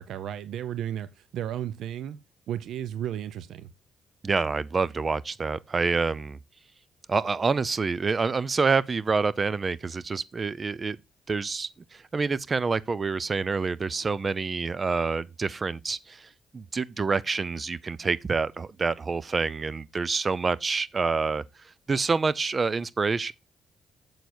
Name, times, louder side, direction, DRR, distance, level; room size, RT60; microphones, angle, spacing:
voice 1, 0.0-2.2 2.5-3.7, right 10 dB, 75° right, 0.8 m, -34 dB
voice 2, 4.2-6.4 7.1-11.0 11.3-21.4 21.9-23.3, right 4 dB, 35° right, 0.5 m, -27 dB
7.8 x 7.0 x 4.4 m
cardioid pair, 90°, 0 cm